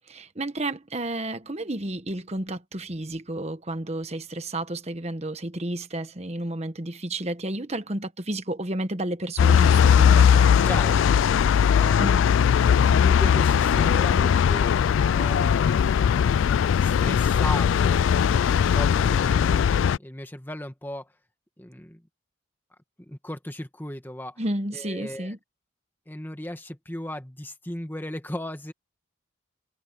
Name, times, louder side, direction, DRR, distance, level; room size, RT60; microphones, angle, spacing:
voice 1, 0.1-10.7 12.0-12.2 24.4-25.4, right 1 dB, 30° right, 1.2 m, -31 dB
sound 1, 9.4-20.0, left 8 dB, 70° left, 0.3 m, -19 dB
voice 2, 10.6-11.2 11.7-12.3 12.9-15.8 16.8-18.1 18.5-21.1 21.6-22.0 23.0-24.4 24.7-25.3 26.1-28.7, left 1 dB, 10° left, 1.9 m, -36 dB
head